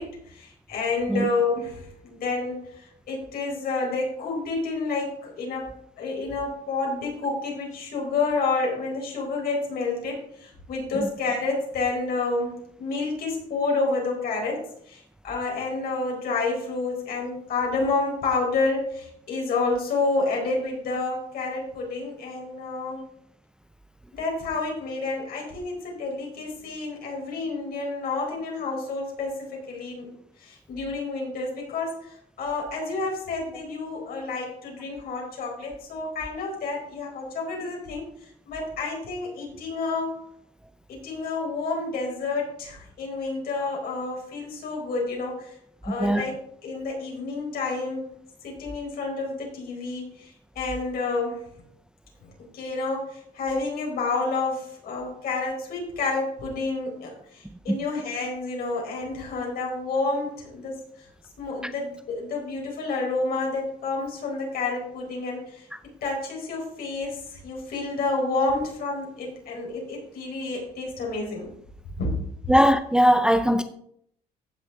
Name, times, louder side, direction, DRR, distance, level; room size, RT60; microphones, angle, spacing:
voice 1, 0.0-5.7 6.0-12.5 12.8-23.0 24.1-30.1 30.4-40.1 40.9-45.6 45.8-46.3 46.6-48.1 48.4-51.4 52.5-61.1 61.4-65.7 66.0-71.5 72.0-72.1, left 3 dB, 65° left, 4.6 m, -29 dB
voice 2, 45.9-46.2 57.7-57.8 61.6-61.7 72.5-73.6, equal, 5° right, 0.5 m, -20 dB
15.0 x 6.4 x 3.7 m
cardioid pair, 110°, 17 cm